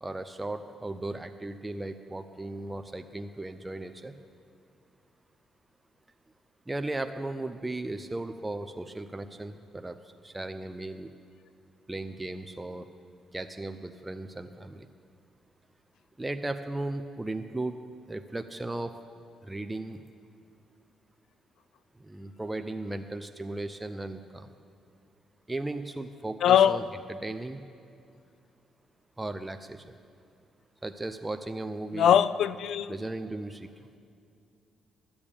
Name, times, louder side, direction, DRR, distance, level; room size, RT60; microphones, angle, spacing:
voice 1, 0.0-4.1 6.7-10.0 10.2-11.1 11.9-12.8 13.3-14.9 16.2-17.8 18.1-18.9 19.5-20.0 22.1-24.5 25.5-27.6 29.2-29.9 30.8-32.2 32.9-33.7, right 2 dB, 15° right, 8 dB, 0.5 m, -36 dB
voice 2, 26.4-26.8 31.9-32.9, left 9 dB, 75° left, 16 dB, 0.4 m, -21 dB
12.0 x 7.0 x 8.6 m, 2.5 s
cardioid pair, 90°, 0 cm